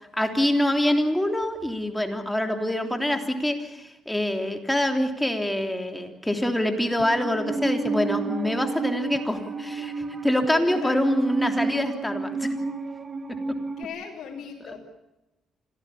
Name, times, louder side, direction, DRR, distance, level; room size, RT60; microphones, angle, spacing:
voice 1, 0.1-12.5, left 1 dB, 5° left, 5 dB, 3.3 m, -25 dB
Musical instrument, 7.0-13.8, right 3 dB, 35° right, 1.6 m, -30 dB
voice 2, 10.4-11.1 13.8-14.8, left 7 dB, 65° left, -3 dB, 4.2 m, -38 dB
26.0 x 17.0 x 8.6 m, 0.97 s
cardioid pair, 90°, 0 cm